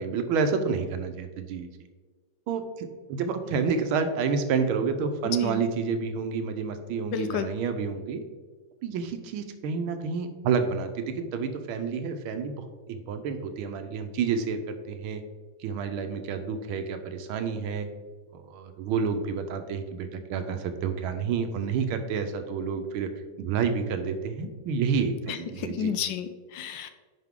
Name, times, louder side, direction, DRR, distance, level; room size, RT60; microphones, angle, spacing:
voice 1, 0.0-1.7 2.5-8.2 8.8-15.2 15.6-17.9 18.3-23.1 23.4-25.9, right 5 dB, 90° right, 7 dB, 1.6 m, -29 dB
voice 2, 7.1-7.5 25.3-26.9, left 8 dB, 75° left, 10 dB, 1.2 m, -31 dB
9.6 x 4.9 x 3.7 m, 1.4 s
omnidirectional pair, 2.2 m